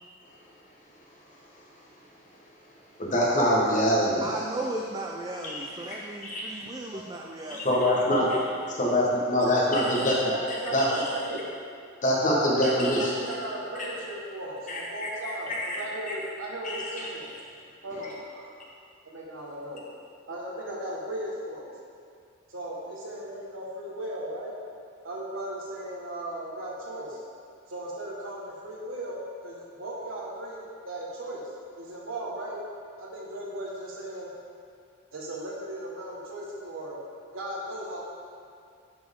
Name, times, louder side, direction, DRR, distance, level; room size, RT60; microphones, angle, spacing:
voice 1, 3.0-4.2 5.4-5.6 5.9-6.6 7.5-10.2 10.5-11.0 12.0-13.1 14.7-15.8 16.1-16.2 16.6-16.8, equal, 40° left, -4 dB, 1.3 m, -25 dB
voice 2, 4.2-7.7, right 2 dB, 20° right, 0 dB, 0.3 m, -35 dB
voice 3, 9.5-9.9 10.2-11.4 12.3-17.4 17.8-18.7 19.0-19.8 20.3-21.7 22.5-24.5 25.0-27.2 27.7-31.4 31.7-32.6 33.0-34.3 35.1-37.0 37.3-38.0, right 1 dB, 75° right, -4 dB, 1.5 m, -37 dB
10.0 x 4.4 x 3.7 m, 2.3 s
head